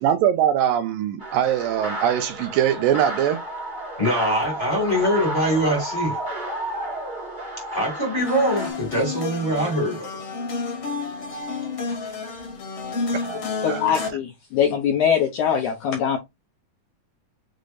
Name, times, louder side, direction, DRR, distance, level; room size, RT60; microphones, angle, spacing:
voice 1, 0.0-3.4 13.2-14.2, right 10 dB, 80° right, 2.2 m, -22 dB
sound 1, 1.2-8.7, right 1 dB, 30° right, 0.8 m, -32 dB
voice 2, 4.0-6.2 7.7-10.1 11.9-12.0, equal, 20° left, 1.3 m, -23 dB
sound 2, 8.2-14.1, left 4 dB, 50° left, 1.7 m, -30 dB
voice 3, 13.6-16.2, left 8 dB, 80° left, 1.8 m, -22 dB
6.6 x 3.2 x 2.5 m
omnidirectional pair, 4.2 m